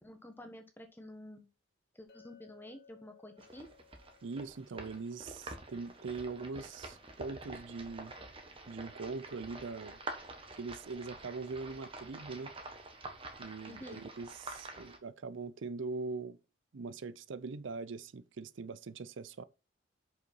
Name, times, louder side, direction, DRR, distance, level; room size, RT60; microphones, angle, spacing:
voice 1, 0.0-1.5 1.9-3.7 13.7-14.0, left 1 dB, 10° left, 1.3 m, -50 dB
Chink clink, 2.1-6.3, left 7 dB, 55° left, 1.4 m, -63 dB
sound 1, 3.4-15.0, right 2 dB, 25° right, 1.4 m, -47 dB
voice 2, 4.2-8.1 8.7-10.0 10.6-12.5 13.4-16.4 16.7-19.4, right 4 dB, 70° right, 0.5 m, -42 dB
6.5 x 5.7 x 4.5 m
head